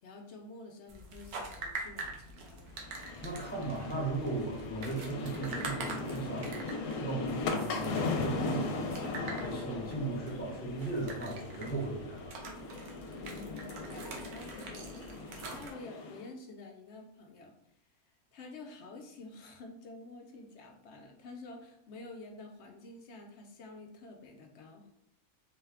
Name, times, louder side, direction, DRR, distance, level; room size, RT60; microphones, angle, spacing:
voice 1, 0.0-2.7 13.1-17.5 18.0-24.8, left 3 dB, 60° left, 2 dB, 0.7 m, -49 dB
sound 1, 0.9-15.7, right 3 dB, 85° right, 1.2 m, -45 dB
sound 2, 2.8-16.3, left 3 dB, 80° left, 1.1 m, -38 dB
voice 2, 3.2-12.3, right 2 dB, 10° left, -5 dB, 0.8 m, -37 dB
3.9 x 2.2 x 3.5 m, 0.75 s
omnidirectional pair, 1.6 m